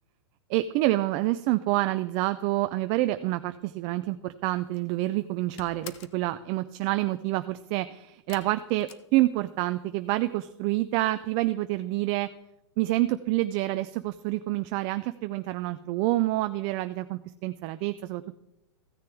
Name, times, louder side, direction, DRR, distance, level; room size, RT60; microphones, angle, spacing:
voice 1, 0.5-12.3 12.8-18.4, right 17 dB, 30° right, 11 dB, 0.3 m, -27 dB
sound 1, 4.6-4.9 5.2-6.3 8.3-9.8 10.1-10.7 11.0-11.1 11.4-11.5, left 11 dB, 35° left, 0.7 m, -48 dB
15.5 x 6.6 x 3.5 m, 0.91 s
hypercardioid pair, 140°, 15 cm